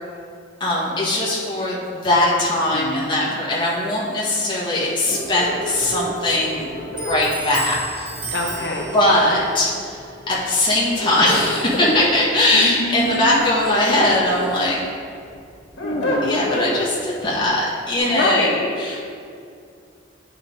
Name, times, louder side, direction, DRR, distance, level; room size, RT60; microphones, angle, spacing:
voice 1, 0.6-6.7 6.9-8.1 8.9-14.8 16.2-18.5 18.8-19.0, left 1 dB, 25° left, -7 dB, 1.8 m, -20 dB
voice 2, 2.7-3.4 8.3-8.9 9.3-9.4 12.5-13.4 15.8-16.4 18.0-19.0, left 1 dB, 60° left, -1 dB, 0.6 m, -26 dB
sound 1, 5.1-7.2 8.4-9.6 10.7-12.0 13.4-14.5 15.0-16.8, equal, 85° left, 1.9 m, -28 dB
Clock, 5.2-14.5, right 2 dB, 25° right, 1.8 m, -37 dB
10.0 x 5.6 x 4.0 m, 2.4 s
head